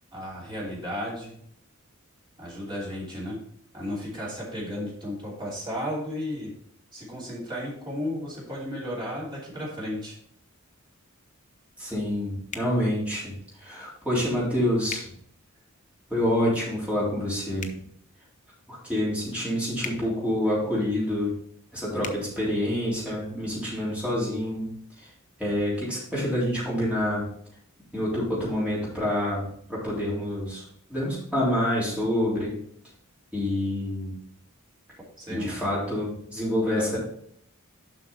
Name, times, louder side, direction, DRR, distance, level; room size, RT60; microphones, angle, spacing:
voice 1, 0.1-1.4 2.4-3.4 3.7-6.5 6.9-10.1 35.2-35.5 36.8-36.9, left 1 dB, 20° right, -6 dB, 2.9 m, -34 dB
voice 2, 11.8-13.3 13.6-15.1 16.1-17.8 18.7-21.3 21.7-24.7 25.0-25.1 25.4-27.2 27.9-30.6 30.9-32.5 33.3-34.2 35.3-37.0, left 1 dB, 5° right, -8 dB, 3.5 m, -27 dB
sound 1, 12.5-12.7 14.9-15.1 17.5-17.8 19.8-20.0 22.0-22.2, left 6 dB, 35° left, 0.7 m, -37 dB
7.3 x 5.8 x 4.2 m, 0.66 s
head